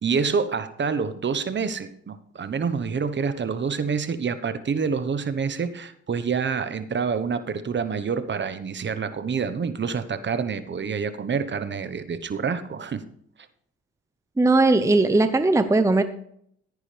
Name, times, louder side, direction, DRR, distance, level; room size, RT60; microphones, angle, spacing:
voice 1, 0.0-13.0, right 5 dB, 40° right, 12 dB, 1.2 m, -27 dB
voice 2, 14.4-16.0, right 2 dB, 10° right, 10 dB, 0.8 m, -18 dB
14.5 x 9.8 x 3.4 m, 0.67 s
supercardioid pair, 75°, 30 cm